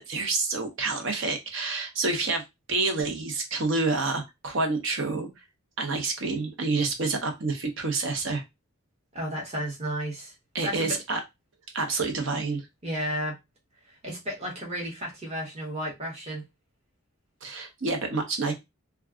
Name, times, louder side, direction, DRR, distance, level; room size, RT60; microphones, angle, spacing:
voice 1, 0.0-2.4 2.7-5.3 5.8-8.4 10.5-11.2 11.7-12.6 17.4-18.5, right 3 dB, 60° right, 0.7 m, -28 dB
voice 2, 9.1-10.3 10.6-11.0 12.8-13.3 14.0-16.4, equal, 30° right, 1.0 m, -32 dB
2.3 x 2.3 x 3.5 m
head